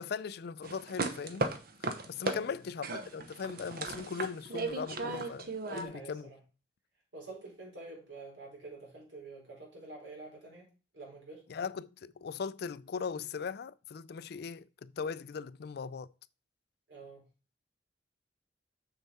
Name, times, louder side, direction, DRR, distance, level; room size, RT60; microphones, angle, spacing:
voice 1, 0.0-1.5 1.8-2.9 3.1-6.3 11.5-16.1, left 5 dB, 60° left, 0.4 m, -39 dB
Footsteps on Hard Floor, 0.6-2.4 2.8-5.8, right 3 dB, 55° right, 0.9 m, -36 dB
voice 2, 5.6-6.4 7.1-10.7 10.9-11.4 16.9-17.2, right 3 dB, 85° right, 4.1 m, -47 dB
6.9 x 6.6 x 4.2 m
head